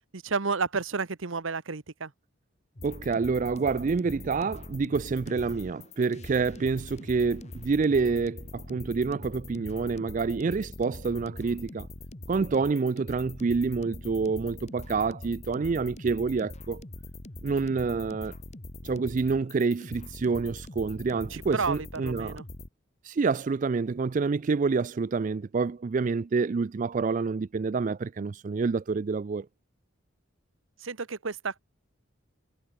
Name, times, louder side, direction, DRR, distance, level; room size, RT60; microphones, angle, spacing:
voice 1, 0.1-2.1 21.3-22.4 30.8-31.6, right 4 dB, 75° right, 1.1 m, -31 dB
sound 1, 2.8-22.7, left 2 dB, 35° left, 1.4 m, -43 dB
voice 2, 2.8-11.9 12.3-16.8 17.4-18.3 18.8-22.4 23.0-29.5, right 4 dB, 40° right, 0.3 m, -27 dB
head